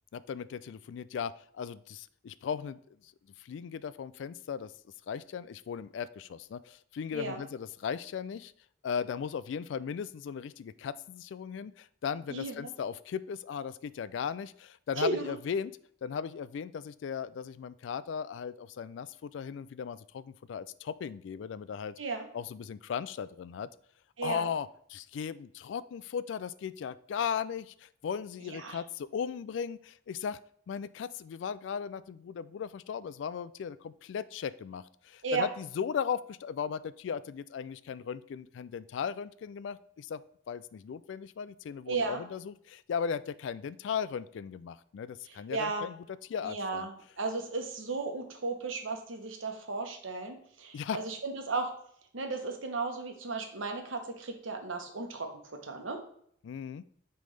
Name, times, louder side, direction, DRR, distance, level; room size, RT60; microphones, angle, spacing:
voice 1, 0.1-2.8 3.4-4.7 5.1-8.5 8.8-15.7 16.0-21.9 22.3-23.7 24.2-30.4 30.7-40.2 40.5-46.0 46.3-46.9 50.7-51.0 56.4-56.8, left 7 dB, 70° left, 17 dB, 0.3 m, -37 dB
voice 2, 12.3-12.7 15.0-15.3 22.0-22.3 24.2-24.5 28.4-28.8 35.2-35.5 41.9-42.2 45.5-45.8 46.4-51.7 52.1-55.3 55.6-56.0, right 3 dB, 85° right, 4 dB, 1.1 m, -35 dB
9.1 x 3.4 x 3.3 m, 0.64 s
head